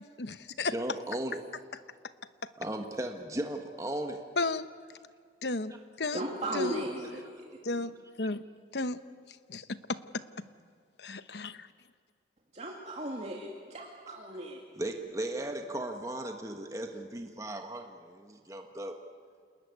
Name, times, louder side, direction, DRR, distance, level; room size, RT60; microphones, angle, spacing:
voice 1, 0.2-0.7 4.4-4.7 5.4-6.3 6.5-6.8 7.6-7.9 8.2-8.4 8.7-9.0 9.5-10.2 11.0-11.7, left 3 dB, 75° left, 12 dB, 1.0 m, -33 dB
voice 2, 0.7-1.4 2.6-4.2 6.1-6.2 14.7-18.9, right 1 dB, 20° right, 4 dB, 1.5 m, -36 dB
voice 3, 6.1-7.5 12.5-14.6, right 1 dB, 40° right, -1 dB, 2.5 m, -36 dB
29.0 x 20.0 x 9.5 m, 2.1 s
head